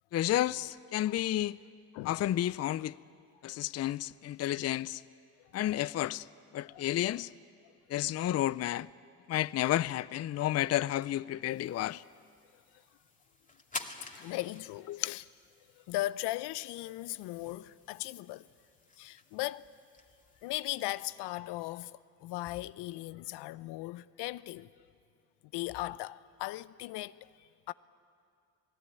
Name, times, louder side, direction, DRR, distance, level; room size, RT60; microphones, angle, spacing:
voice 1, 0.1-1.6 2.0-2.9 3.4-5.0 5.5-6.3 6.5-7.3 7.9-8.9 9.3-12.0 14.9-15.2, left 13 dB, 35° left, 0.5 m, -31 dB
sound 1, 11.4-20.9, left 3 dB, 20° left, 2.3 m, -50 dB
voice 2, 14.1-15.2 15.8-18.5 19.0-19.7 20.4-24.7 25.5-27.3 27.7-27.8, left 17 dB, 70° left, 0.7 m, -38 dB
27.5 x 17.5 x 9.7 m
hypercardioid pair, 60°, 43 cm